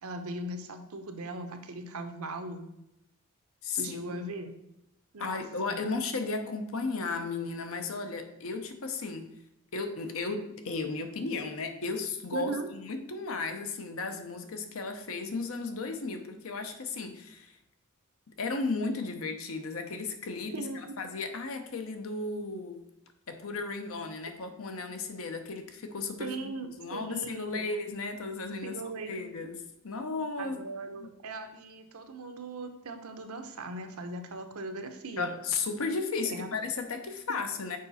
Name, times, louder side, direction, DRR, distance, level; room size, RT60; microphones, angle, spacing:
voice 1, 0.0-2.6 3.7-4.5 5.1-5.8 12.3-12.7 20.5-21.0 26.2-27.7 28.6-29.3 30.4-35.3 36.3-36.5, right 2 dB, 80° right, 6 dB, 0.8 m, -39 dB
voice 2, 3.6-4.2 5.2-9.3 9.7-17.6 18.4-20.7 21.0-22.8 23.3-26.5 26.8-28.8 29.1-30.6 31.0-31.1 35.2-37.8, left 3 dB, 65° left, 7 dB, 0.8 m, -34 dB
6.5 x 4.9 x 4.1 m, 0.84 s
head